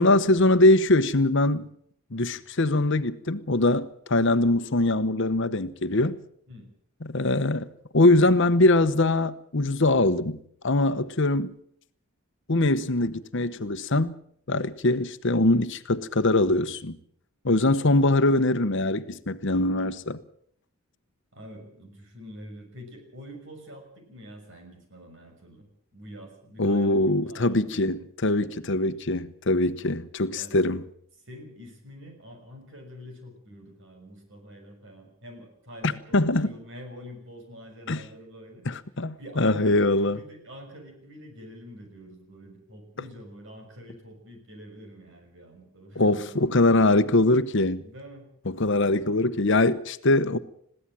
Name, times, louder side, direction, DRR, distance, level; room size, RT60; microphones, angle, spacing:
voice 1, 0.0-1.7 2.1-6.2 7.0-11.6 12.5-14.1 14.5-17.0 17.4-20.2 26.6-30.8 35.8-36.5 37.9-38.0 38.7-40.2 46.0-47.9 48.5-50.4, left 2 dB, 60° left, 1.0 m, -22 dB
voice 2, 17.5-17.9 21.3-25.7 25.9-28.0 30.3-30.6 31.3-38.6 39.2-46.3 47.8-48.3, equal, 60° right, 6.3 m, -46 dB
21.5 x 16.5 x 7.6 m
head